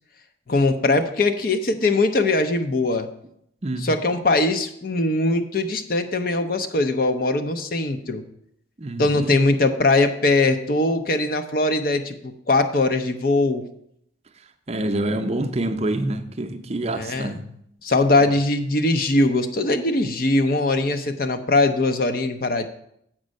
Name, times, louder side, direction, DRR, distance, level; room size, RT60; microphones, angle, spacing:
voice 1, 0.5-3.1 3.8-8.2 9.0-13.6 16.9-17.4 17.8-22.7, left 2 dB, 50° left, 8 dB, 0.6 m, -21 dB
voice 2, 8.8-9.3 14.7-17.4, right 1 dB, 35° right, 6 dB, 0.6 m, -26 dB
7.5 x 5.2 x 6.4 m, 0.73 s
head